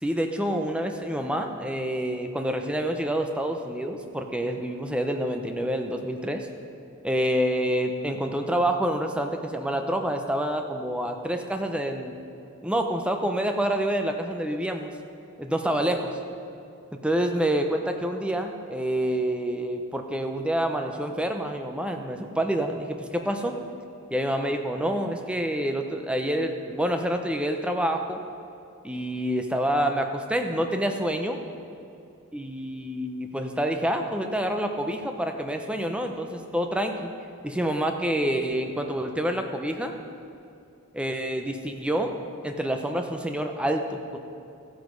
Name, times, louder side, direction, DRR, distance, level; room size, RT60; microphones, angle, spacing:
voice 1, 0.0-6.5 7.0-12.1 12.6-14.9 15.4-16.1 16.9-23.6 24.1-28.2 28.8-31.4 32.3-37.1 37.4-40.0 40.9-44.2, right 1 dB, 5° right, 4 dB, 0.6 m, -27 dB
14.5 x 8.0 x 5.3 m, 2.6 s
head